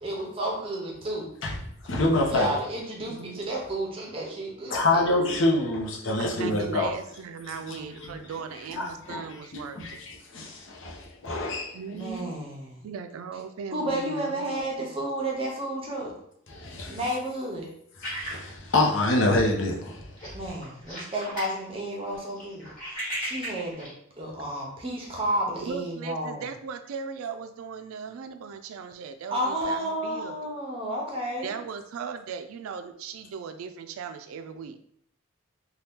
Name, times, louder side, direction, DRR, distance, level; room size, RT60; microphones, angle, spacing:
voice 1, 0.0-1.3 2.3-5.0 11.9-12.9 13.7-16.2 16.9-17.7 20.3-23.9 24.2-26.4 29.3-31.5, right 1 dB, 25° right, 0.7 m, -31 dB
voice 2, 1.4-2.5 4.7-6.9 7.7-8.3 8.7-11.8 16.5-17.0 18.0-20.3, left 2 dB, 65° left, 0.7 m, -27 dB
voice 3, 3.1-3.4 6.2-10.1 11.7-12.5 12.8-15.0 25.6-30.5 31.4-34.8, right 6 dB, 85° right, 0.3 m, -38 dB
sound 1, 18.0-19.4 19.7-19.9 20.2-21.6 21.9-23.9, equal, 40° left, 1.4 m, -36 dB
2.8 x 2.3 x 3.4 m
head